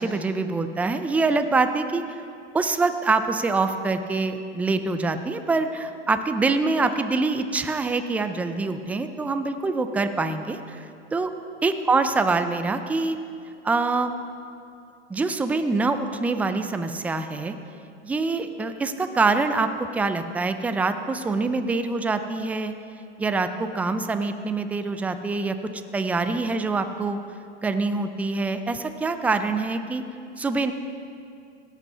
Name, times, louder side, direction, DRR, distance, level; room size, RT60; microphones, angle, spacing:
voice 1, 0.0-2.0 2.5-10.8 11.1-11.3 11.6-13.2 13.6-14.1 15.1-17.6 18.0-22.7 23.2-25.6 25.9-27.2 27.6-30.0 30.4-30.7, right 3 dB, 5° right, 9 dB, 0.3 m, -25 dB
16.5 x 8.3 x 5.5 m, 2.5 s
hypercardioid pair, 115°, 35 cm